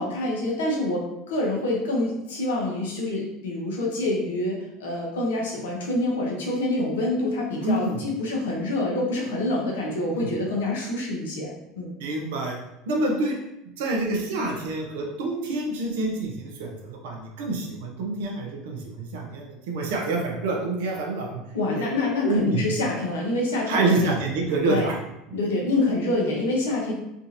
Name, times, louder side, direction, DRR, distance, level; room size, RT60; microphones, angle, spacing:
voice 1, 0.0-11.9 21.5-24.1 24.6-24.9 25.3-26.9, left 2 dB, 85° left, -2 dB, 0.9 m, -26 dB
voice 2, 7.6-8.0 10.1-10.3 12.0-12.6 12.9-13.3 13.8-21.4 21.7-21.9 22.2-22.6 23.7-24.9, right 2 dB, 75° right, 1 dB, 0.7 m, -27 dB
3.5 x 2.5 x 2.8 m, 0.87 s
hypercardioid pair, 85°, 0 cm